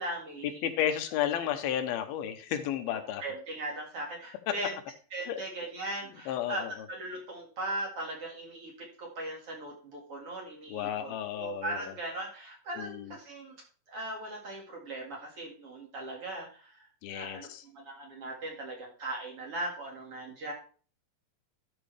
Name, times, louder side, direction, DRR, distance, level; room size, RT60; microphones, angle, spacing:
voice 1, 0.0-0.7 3.2-4.8 5.1-13.6 13.9-20.5, right 1 dB, 45° right, -1 dB, 2.5 m, -39 dB
voice 2, 0.6-3.2 4.5-4.6 5.3-5.4 6.3-6.7 10.7-11.9 12.8-13.1 17.0-17.6, left 10 dB, 85° left, 8 dB, 2.7 m, -32 dB
12.5 x 6.1 x 3.3 m, 0.40 s
omnidirectional pair, 4.3 m